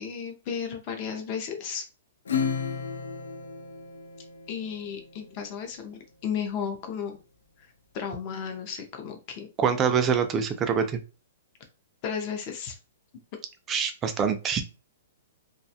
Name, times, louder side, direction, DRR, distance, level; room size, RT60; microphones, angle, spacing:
voice 1, 0.0-1.9 4.5-7.2 7.6-9.5 12.0-12.8, left 7 dB, 30° left, 5 dB, 0.5 m, -34 dB
Acoustic guitar / Strum, 2.2-5.2, left 6 dB, 85° left, 0.4 m, -33 dB
voice 2, 9.6-11.0 13.7-14.6, right 7 dB, 15° right, 7 dB, 0.3 m, -25 dB
2.4 x 2.2 x 2.7 m, 0.32 s
hypercardioid pair, 165°, 0 cm